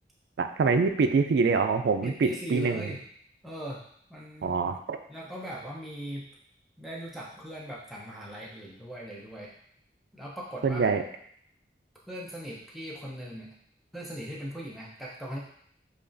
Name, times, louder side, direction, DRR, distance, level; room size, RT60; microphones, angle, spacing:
voice 1, 0.4-2.9 4.4-5.0 10.6-11.0, right 4 dB, 70° right, 7 dB, 0.3 m, -25 dB
voice 2, 2.0-3.0 3.4-4.8 5.1-6.3 6.8-9.5 10.1-10.9 12.1-13.6 13.9-15.4, equal, ahead, -5 dB, 0.5 m, -39 dB
5.0 x 2.4 x 2.5 m, 0.66 s
head